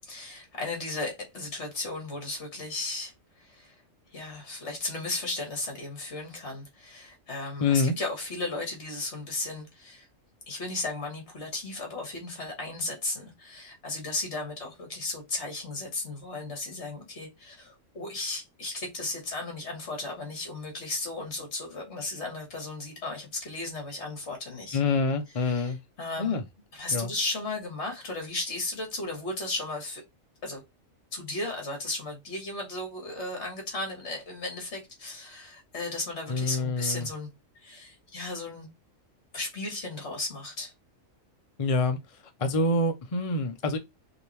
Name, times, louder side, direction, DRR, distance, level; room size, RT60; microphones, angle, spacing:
voice 1, 0.1-3.8 4.1-10.1 10.5-24.8 25.4-25.7 26.0-26.4 26.7-30.0 30.4-30.6 31.1-37.3 37.6-38.7 39.3-40.7, left 2 dB, 55° left, 1.9 m, -35 dB
voice 2, 7.6-7.9 24.7-25.8 26.2-26.4 26.9-27.1 36.3-37.1 41.6-42.0 42.4-43.8, left 3 dB, 35° left, 0.6 m, -26 dB
5.0 x 2.9 x 3.3 m
omnidirectional pair, 1.4 m